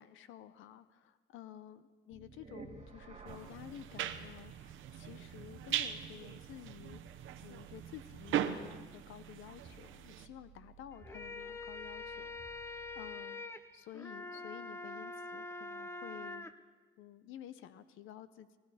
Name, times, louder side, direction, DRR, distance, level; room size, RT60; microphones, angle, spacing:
voice 1, 0.0-16.5 17.0-18.6, left 11 dB, 90° left, 13 dB, 0.7 m, -52 dB
sound 1, 2.1-13.2, right 5 dB, 30° right, 2.1 m, -56 dB
sound 2, 3.3-10.3, right 10 dB, 80° right, 0.9 m, -40 dB
sound 3, 10.9-16.5, left 3 dB, 15° left, 0.6 m, -45 dB
20.5 x 13.5 x 4.2 m, 1.4 s
cardioid pair, 90°, 20 cm